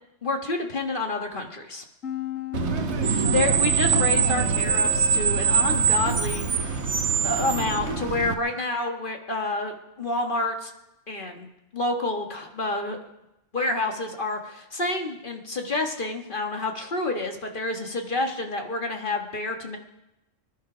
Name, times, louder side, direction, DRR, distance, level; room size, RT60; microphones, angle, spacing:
voice 1, 0.2-1.8 3.0-6.8 7.2-10.7 11.1-11.5 11.7-13.0 13.5-19.8, left 2 dB, 40° left, 3 dB, 1.7 m, -29 dB
sound 1, 2.0-7.1, left 7 dB, 90° left, 1.8 m, -37 dB
Screech, 2.5-8.3, right 6 dB, 60° right, 1.3 m, -23 dB
sound 2, 3.0-8.5, left 1 dB, 70° left, 3.3 m, -42 dB
24.5 x 11.0 x 5.0 m, 0.93 s
omnidirectional pair, 1.3 m